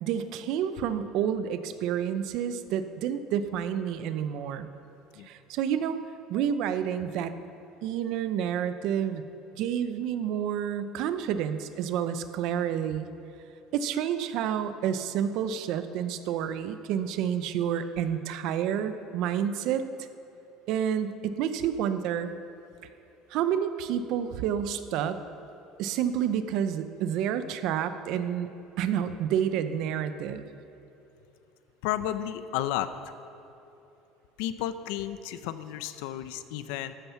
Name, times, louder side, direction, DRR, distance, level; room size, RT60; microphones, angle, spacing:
voice 1, 0.0-4.7 5.2-6.0 6.3-7.3 7.8-9.2 9.5-13.1 13.7-19.8 20.7-22.3 23.3-25.2 25.8-28.5 28.8-30.5, right 9 dB, 55° right, 11 dB, 0.7 m, -29 dB
voice 2, 31.8-32.9 34.4-36.9, left 12 dB, 85° left, 12 dB, 0.7 m, -32 dB
14.0 x 13.0 x 5.8 m, 2.9 s
cardioid pair, 165°, 0 cm